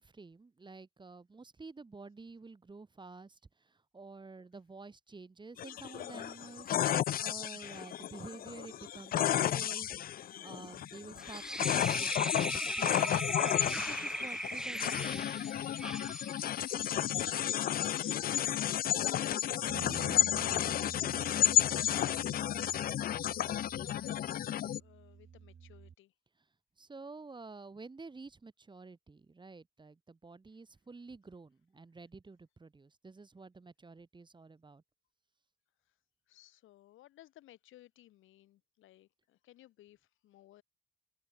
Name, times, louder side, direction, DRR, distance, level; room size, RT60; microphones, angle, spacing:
voice 1, 0.0-6.8 7.2-10.0 10.4-13.6 13.9-15.6 26.8-34.8, right 3 dB, 25° right, 1.6 m, -50 dB
sound 1, 5.6-24.8, left 11 dB, 50° left, 0.4 m, -32 dB
sound 2, 11.2-18.2, right 1 dB, 5° right, 0.8 m, -39 dB
voice 2, 17.2-26.1 36.3-40.6, left 14 dB, 85° left, 3.1 m, -57 dB
sound 3, 19.7-25.9, right 7 dB, 50° right, 6.5 m, -49 dB
cardioid pair, 90°, 20 cm